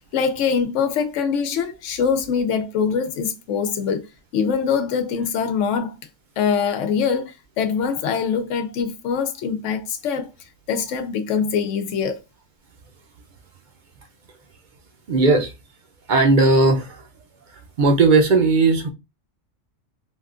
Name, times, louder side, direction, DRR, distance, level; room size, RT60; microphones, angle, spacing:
voice 1, 0.1-4.1 4.3-6.0 6.4-10.3 10.7-12.2, left 6 dB, 80° left, 0.9 m, -23 dB
voice 2, 15.1-15.5 16.1-17.1 17.8-18.9, right 3 dB, 50° right, 0.6 m, -16 dB
3.4 x 2.3 x 2.4 m
omnidirectional pair, 1.3 m